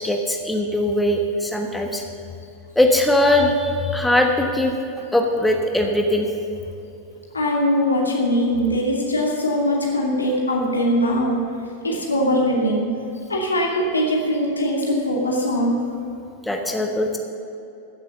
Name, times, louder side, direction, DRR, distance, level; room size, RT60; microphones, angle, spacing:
voice 1, 0.0-2.0 2.7-4.7 5.1-6.3 16.4-17.2, left 1 dB, 5° left, 2 dB, 1.3 m, -20 dB
voice 2, 7.3-11.4 11.8-12.9 13.3-15.8, equal, 80° left, -2 dB, 2.6 m, -21 dB
14.5 x 8.1 x 6.7 m, 2.8 s
figure-of-eight pair, 90°, 0 cm